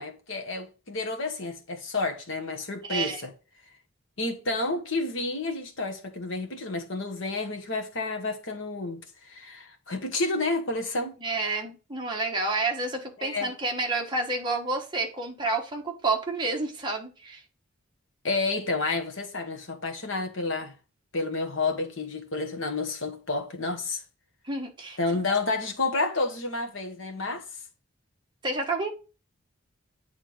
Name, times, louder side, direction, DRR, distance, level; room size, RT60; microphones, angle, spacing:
voice 1, 0.0-3.3 4.2-11.2 13.2-13.5 18.2-20.7 21.1-24.0 25.0-27.4, left 3 dB, 65° left, 1.3 m, -30 dB
voice 2, 2.8-3.2 11.2-17.4 24.5-25.0 28.4-28.9, right 3 dB, 20° right, 1.2 m, -29 dB
8.6 x 3.5 x 3.7 m
head